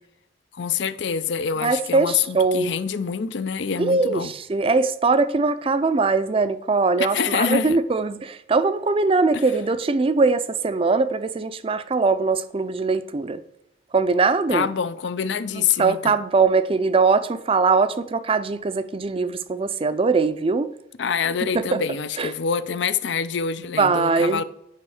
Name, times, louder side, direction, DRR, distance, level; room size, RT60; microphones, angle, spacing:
voice 1, 0.5-4.3 7.0-7.8 9.3-9.4 14.5-16.1 21.0-24.4, left 6 dB, 75° left, 0.5 m, -26 dB
voice 2, 1.6-2.7 3.8-13.4 13.9-14.7 15.5-20.7 21.5-21.8 22.2-22.3 23.8-24.4, right 4 dB, 30° right, 0.4 m, -21 dB
9.7 x 5.5 x 4.9 m
head